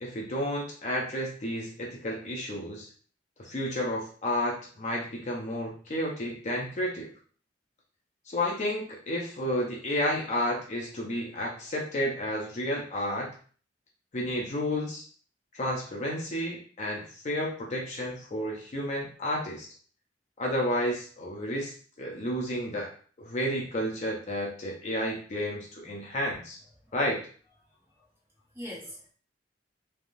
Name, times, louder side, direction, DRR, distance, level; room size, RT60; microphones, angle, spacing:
voice 1, 0.0-2.9 3.4-7.1 8.3-13.3 14.1-15.0 15.5-19.7 20.4-21.7 22.0-22.9 23.2-26.6 26.9-27.3, left 1 dB, 40° left, -2 dB, 0.6 m, -31 dB
voice 2, 27.6-28.0 28.5-29.1, equal, 15° right, -6 dB, 1.2 m, -43 dB
3.4 x 2.4 x 2.6 m, 0.43 s
head